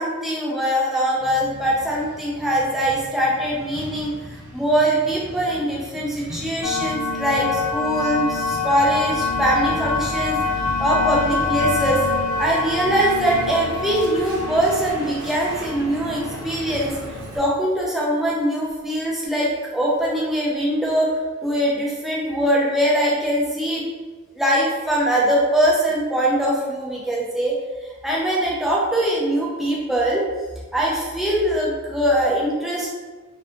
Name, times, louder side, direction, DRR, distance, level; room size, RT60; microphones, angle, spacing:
voice 1, 0.0-10.4 10.8-12.1 12.4-16.9 17.4-21.1 21.4-23.8 24.4-27.6 28.0-30.3 30.7-32.9, equal, ahead, -5 dB, 0.4 m, -22 dB
Truck, 1.2-17.4, right 1 dB, 60° right, 0.7 m, -35 dB
sound 1, 6.6-17.4, left 3 dB, 80° left, 0.4 m, -26 dB
2.6 x 2.5 x 2.3 m, 1.3 s
head